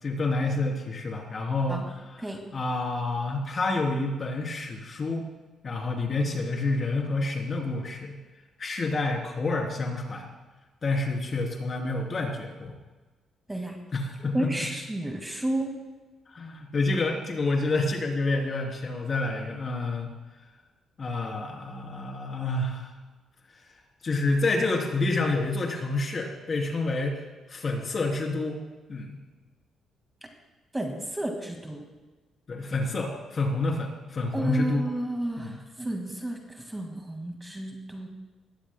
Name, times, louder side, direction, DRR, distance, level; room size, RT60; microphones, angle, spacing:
voice 1, 0.0-2.2 2.5-5.2 5.6-8.2 8.6-10.3 10.8-12.7 13.9-14.7 16.3-20.1 21.0-22.9 24.0-27.2 27.5-28.6 28.9-29.2 32.5-34.9 35.4-35.6, left 2 dB, 40° left, 0 dB, 3.3 m, -28 dB
voice 2, 14.3-15.7 30.7-31.8 34.3-36.4 36.7-38.1, right 1 dB, 15° right, 2 dB, 1.9 m, -31 dB
20.0 x 15.0 x 2.2 m, 1.2 s
cardioid pair, 90°, 0 cm